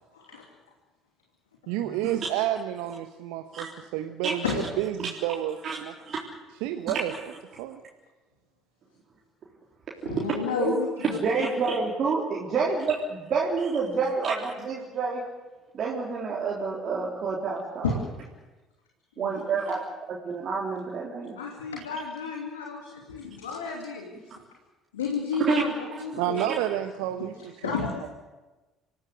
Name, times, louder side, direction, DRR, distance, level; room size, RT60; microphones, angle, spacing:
voice 1, 0.1-0.4 1.6-2.0 4.4-4.6 10.0-11.2 17.8-18.0 19.2-19.5 21.4-24.1 24.9-26.5 27.6-28.1, left 5 dB, 80° left, 0 dB, 2.8 m, -32 dB
voice 2, 1.7-3.7 3.9-5.9 6.6-7.1 7.6-7.8 12.6-12.7 14.0-14.1 26.2-27.8, right 12 dB, 65° right, 7 dB, 1.1 m, -30 dB
voice 3, 5.6-6.2 6.6-7.0 10.0-10.2 10.6-15.2 15.7-17.9 19.2-19.8 20.1-21.4 25.5-25.6, right 5 dB, 45° right, -4 dB, 3.8 m, -28 dB
26.0 x 16.0 x 8.1 m, 1.2 s
figure-of-eight pair, 55°, 0 cm